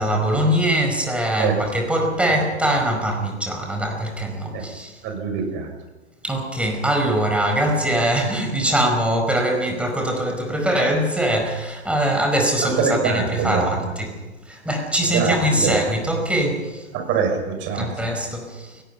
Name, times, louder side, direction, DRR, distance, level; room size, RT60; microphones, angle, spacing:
voice 1, 0.0-4.9 6.2-14.2 14.5-16.9 17.8-18.8, right 1 dB, 5° right, 2 dB, 4.9 m, -22 dB
voice 2, 5.0-5.7 12.6-13.9 15.1-15.9 16.9-17.9, right 6 dB, 35° right, 4 dB, 6.4 m, -24 dB
29.5 x 18.0 x 5.7 m, 1.1 s
figure-of-eight pair, 105°, 34 cm